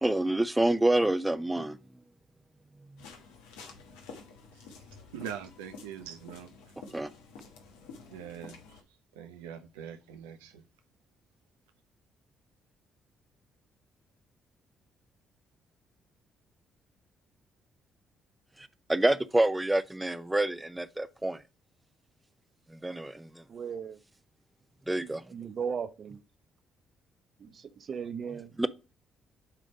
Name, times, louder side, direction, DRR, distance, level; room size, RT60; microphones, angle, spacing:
voice 1, 0.0-1.8 6.9-7.1 18.6-21.4 22.7-23.4 24.9-25.2 28.6-28.7, right 1 dB, 15° right, 0.7 m, -27 dB
sound 1, 3.0-8.8, left 4 dB, 80° left, 1.3 m, -50 dB
voice 2, 5.1-6.5 8.1-8.8 9.2-10.6, right 8 dB, 85° right, 0.6 m, -43 dB
voice 3, 23.5-24.0 24.9-26.2 27.4-28.5, right 6 dB, 50° right, 1.0 m, -37 dB
7.6 x 3.4 x 5.2 m
hypercardioid pair, 45°, 0 cm